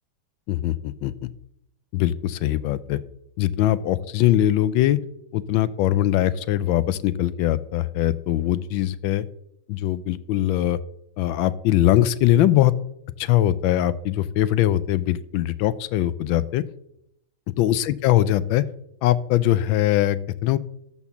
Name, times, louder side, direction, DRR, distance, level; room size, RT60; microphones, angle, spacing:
voice 1, 0.5-1.3 1.9-3.0 3.4-5.0 5.3-9.3 9.7-10.8 11.2-12.7 13.2-16.6 17.6-18.6 19.0-20.6, left 13 dB, 75° left, 16 dB, 1.2 m, -21 dB
12.5 x 4.4 x 7.1 m, 0.77 s
omnidirectional pair, 2.4 m